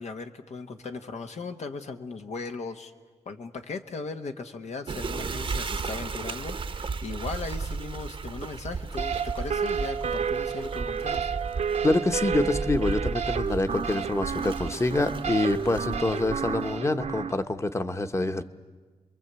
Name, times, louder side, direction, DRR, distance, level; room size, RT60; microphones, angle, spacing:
voice 1, 0.0-2.9 3.2-11.3, left 4 dB, 80° left, 5 dB, 1.4 m, -37 dB
sound 1, 4.9-16.8, right 4 dB, 50° right, 0.8 m, -35 dB
sound 2, 9.0-17.3, right 7 dB, 85° right, 1.1 m, -31 dB
voice 2, 11.8-18.4, left 2 dB, 25° left, 9 dB, 1.0 m, -26 dB
30.0 x 22.5 x 8.2 m, 1.4 s
wide cardioid pair, 115°, 11 cm